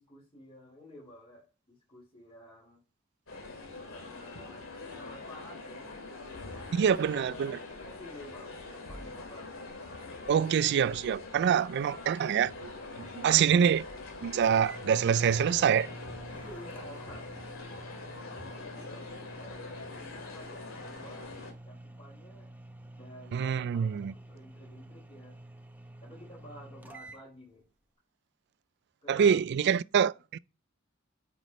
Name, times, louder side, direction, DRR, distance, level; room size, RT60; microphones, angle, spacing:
voice 1, 0.0-2.8 3.9-4.6 4.9-5.9 6.8-9.6 11.3-11.7 16.3-17.4 17.8-18.1 18.4-21.3 21.6-22.5 22.9-25.4 26.0-27.7 29.0-29.4 30.0-30.2, equal, 30° left, 4.3 m, -51 dB
sound 1, 3.3-21.5, left 3 dB, 90° left, 2.2 m, -44 dB
voice 2, 6.7-7.6 10.3-13.9 14.2-15.9 23.3-24.1 29.1-30.4, right 8 dB, 55° right, 0.3 m, -26 dB
sound 2, 14.1-14.2 14.4-27.2, right 1 dB, 10° right, 0.8 m, -49 dB
9.1 x 5.9 x 3.1 m
head